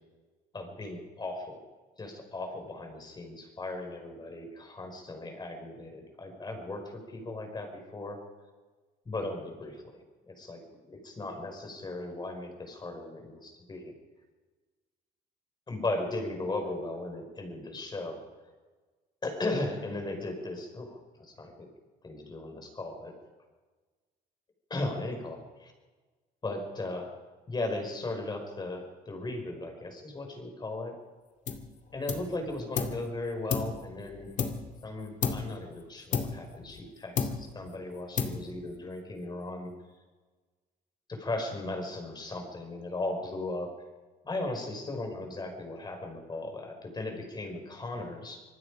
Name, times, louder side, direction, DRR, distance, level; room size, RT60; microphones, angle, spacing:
voice 1, 0.5-1.6 2.0-8.2 9.1-13.9 15.7-18.2 19.2-21.7 22.0-23.1 24.7-25.7 26.4-27.1 27.5-31.0 31.9-34.3 34.8-39.7 41.1-43.8 44.2-48.4, left 2 dB, 25° left, 4 dB, 5.7 m, -37 dB
sound 1, 31.5-31.7 32.1-33.1 33.5-34.8 35.2-35.6 36.1-36.9 37.2-37.7 38.2-38.7, left 6 dB, 50° left, 2.4 m, -32 dB
26.5 x 19.5 x 5.1 m, 1.3 s
cardioid pair, 110°, 17 cm